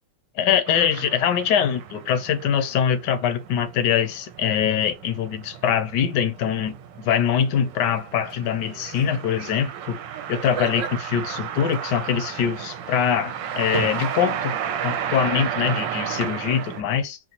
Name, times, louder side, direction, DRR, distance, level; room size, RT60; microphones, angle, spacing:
voice 1, 0.4-10.0 10.3-14.5 14.8-17.2, left 8 dB, 75° left, 1.1 m, -23 dB
sound 1, 0.7-16.8, right 8 dB, 75° right, 1.2 m, -33 dB
4.1 x 2.3 x 2.8 m
omnidirectional pair, 2.1 m